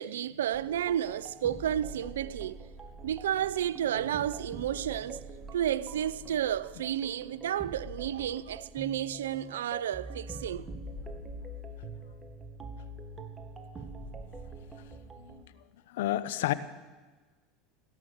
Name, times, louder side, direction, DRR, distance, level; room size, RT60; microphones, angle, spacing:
voice 1, 0.0-2.6 3.0-5.2 5.5-10.7, right 10 dB, 90° right, 0.5 m, -31 dB
sound 1, 0.5-15.4, right 2 dB, 25° right, 1.7 m, -44 dB
voice 2, 15.9-16.5, left 14 dB, 80° left, 0.8 m, -31 dB
17.0 x 11.0 x 6.6 m
hypercardioid pair, 100°, 0 cm